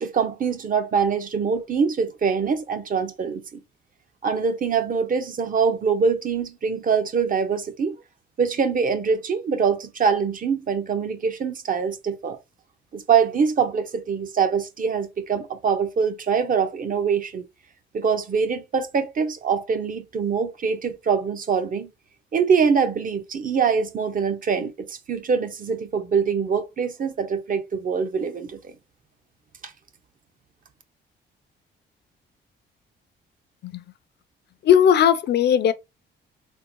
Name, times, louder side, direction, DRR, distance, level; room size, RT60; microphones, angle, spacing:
voice 1, 0.0-3.6 4.2-7.9 8.4-12.4 12.9-17.4 17.9-21.9 22.3-28.7 29.6-29.7, right 6 dB, 45° right, 0.7 m, -24 dB
voice 2, 34.6-35.7, left 9 dB, 55° left, 0.5 m, -17 dB
3.6 x 2.1 x 3.0 m
cardioid pair, 90°, 20 cm